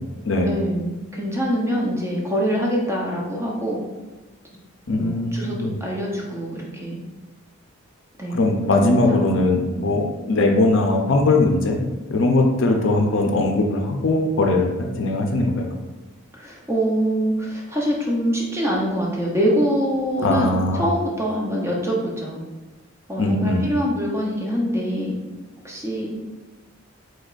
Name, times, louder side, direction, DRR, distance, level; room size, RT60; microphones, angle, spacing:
voice 1, 0.4-3.8 5.0-7.0 8.2-8.4 8.8-9.2 16.3-22.4 23.1-25.2 25.6-26.1, equal, 10° right, -3 dB, 0.7 m, -24 dB
voice 2, 4.9-5.8 8.3-11.8 12.1-15.7 20.2-20.8 23.2-23.6, left 2 dB, 55° left, 2 dB, 0.5 m, -20 dB
5.1 x 3.9 x 2.5 m, 1.2 s
head